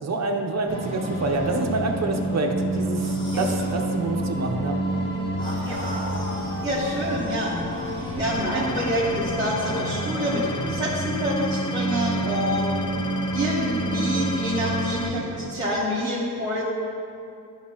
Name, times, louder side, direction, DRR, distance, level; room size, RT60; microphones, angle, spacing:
voice 1, 0.0-4.8, right 2 dB, 50° right, 2 dB, 0.7 m, -27 dB
sound 1, 0.7-15.0, right 1 dB, 15° left, 1.7 m, -28 dB
sound 2, 2.9-3.7 5.4-8.5, left 1 dB, 35° left, 1.2 m, -38 dB
voice 2, 3.3-3.7 5.6-5.8 6.6-7.6 8.1-12.7 13.3-16.6, equal, 10° right, -9 dB, 1.1 m, -27 dB
sound 3, 8.2-15.1, left 4 dB, 55° left, 0.5 m, -35 dB
12.0 x 5.2 x 2.9 m, 2.5 s
wide cardioid pair, 170°, 36 cm